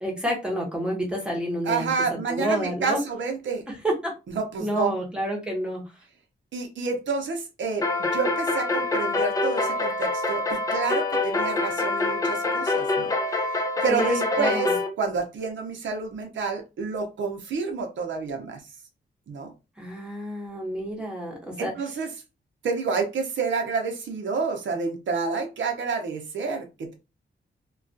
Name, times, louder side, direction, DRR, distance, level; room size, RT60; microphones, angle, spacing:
voice 1, 0.0-1.9 2.3-3.0 3.7-4.1 4.6-5.8 13.9-14.7 19.8-21.7, right 1 dB, 5° right, 0 dB, 0.8 m, -29 dB
voice 2, 1.6-3.6 4.3-4.9 6.5-13.1 13.8-14.7 15.0-18.6 19.3-19.5 21.6-22.1 22.6-26.9, right 4 dB, 80° right, 3 dB, 0.6 m, -29 dB
sound 1, 7.8-14.9, left 2 dB, 20° left, 0.4 m, -25 dB
2.3 x 2.3 x 2.5 m, 0.27 s
wide cardioid pair, 155°, 19 cm